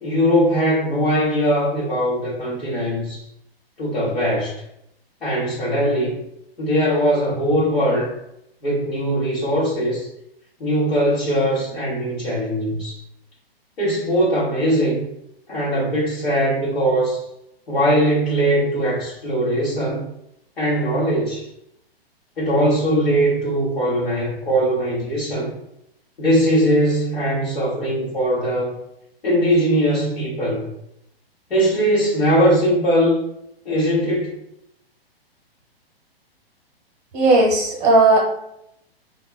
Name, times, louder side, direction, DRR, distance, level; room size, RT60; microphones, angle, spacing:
voice 1, 0.0-3.2 3.8-4.6 5.2-6.2 6.6-8.1 8.6-10.1 10.6-13.0 13.8-15.0 15.5-17.2 17.7-20.1 20.6-21.5 22.4-25.5 26.2-28.8 29.2-30.7 31.5-33.2 33.6-34.3, equal, 75° left, -8 dB, 1.1 m, -20 dB
voice 2, 37.1-38.2, right 2 dB, 30° right, -3 dB, 0.8 m, -15 dB
3.5 x 2.3 x 2.2 m, 0.78 s
figure-of-eight pair, 115°, 31 cm